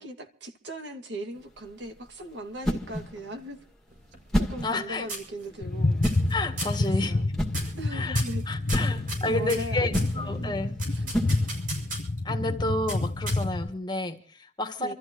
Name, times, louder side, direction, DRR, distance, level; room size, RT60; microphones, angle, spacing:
voice 1, 0.0-3.6 4.4-6.0 6.8-7.3 7.8-8.4 9.3-10.5 10.9-11.2 14.8-14.9, right 1 dB, 80° right, 2.5 m, -39 dB
sound 1, 1.3-11.9, equal, 5° left, 2.0 m, -34 dB
sound 2, 3.9-4.8 5.1-5.7 6.0-6.3 6.6-6.9 7.5-7.8 8.1-10.1 10.8-12.2 12.9-13.7, right 2 dB, 50° right, 6.1 m, -37 dB
voice 2, 4.6-5.1 6.3-7.1 7.9-10.7 12.2-14.9, left 2 dB, 25° left, 1.7 m, -31 dB
sound 3, 5.6-13.7, left 2 dB, 65° left, 0.9 m, -28 dB
27.5 x 13.5 x 3.0 m
head